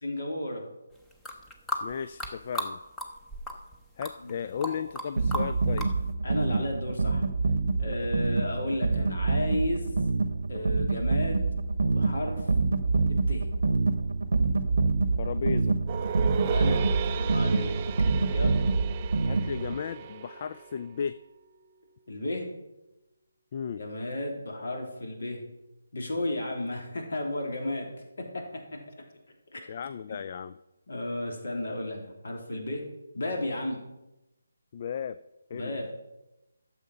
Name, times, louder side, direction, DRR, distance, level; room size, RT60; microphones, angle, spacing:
voice 1, 0.0-0.6 4.2-4.4 4.7-4.8 6.2-7.2 7.8-10.0 10.5-11.5 11.9-12.5 13.3-13.4 16.4-17.7 18.3-18.7 22.1-22.4 23.8-25.4 25.9-27.9 28.2-28.4 29.5-29.6 30.9-32.8 33.1-33.8 35.5-35.9, left 1 dB, 55° left, 1 dB, 3.2 m, -33 dB
sound 1, 1.1-2.7 3.0-5.1 5.3-5.9, equal, 5° left, 1.0 m, -34 dB
voice 2, 1.8-2.8 4.0-5.9 15.2-15.8 19.2-21.2 23.5-23.8 29.7-30.6 34.7-35.2 35.5-35.8, left 7 dB, 40° left, 13 dB, 0.3 m, -35 dB
sound 2, 5.2-19.8, right 3 dB, 65° right, 0.8 m, -26 dB
sound 3, 15.9-21.1, right 8 dB, 25° right, 0.5 m, -35 dB
12.0 x 7.3 x 5.6 m, 0.98 s
figure-of-eight pair, 150°, 0 cm